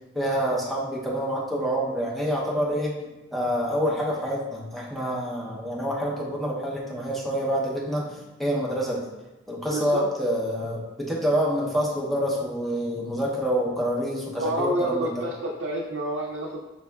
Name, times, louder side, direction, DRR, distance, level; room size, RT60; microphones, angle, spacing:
voice 1, 0.1-2.9 3.3-9.1 9.5-15.2, equal, ahead, -5 dB, 0.6 m, -27 dB
voice 2, 9.7-10.1 14.4-16.6, right 1 dB, 90° right, -3 dB, 0.5 m, -28 dB
5.2 x 2.3 x 2.2 m, 1.0 s
head